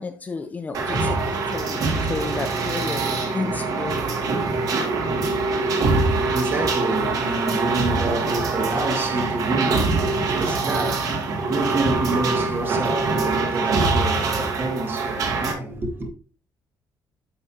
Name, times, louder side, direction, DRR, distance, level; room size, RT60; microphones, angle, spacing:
voice 1, 0.0-3.0 3.3-4.1, left 4 dB, 20° left, 0.6 m, -31 dB
sound 1, 0.7-15.5, right 3 dB, 55° right, 2.1 m, -23 dB
voice 2, 5.6-16.1, right 2 dB, 30° right, 1.9 m, -28 dB
9.9 x 6.6 x 2.8 m
cardioid pair, 170°, 7 cm